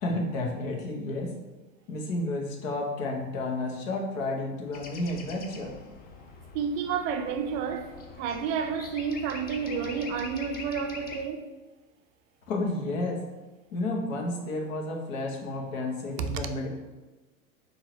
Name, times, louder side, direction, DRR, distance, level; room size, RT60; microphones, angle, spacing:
voice 1, 0.0-1.3 1.9-5.7 12.5-13.2 13.7-16.7, left 2 dB, 70° left, 1.2 m, -31 dB
sound 1, 4.7-11.2, left 4 dB, 25° left, 0.5 m, -44 dB
voice 2, 6.5-11.5 16.2-16.4, right 6 dB, 35° right, 0.4 m, -30 dB
3.8 x 2.8 x 4.6 m
hypercardioid pair, 105°, 41 cm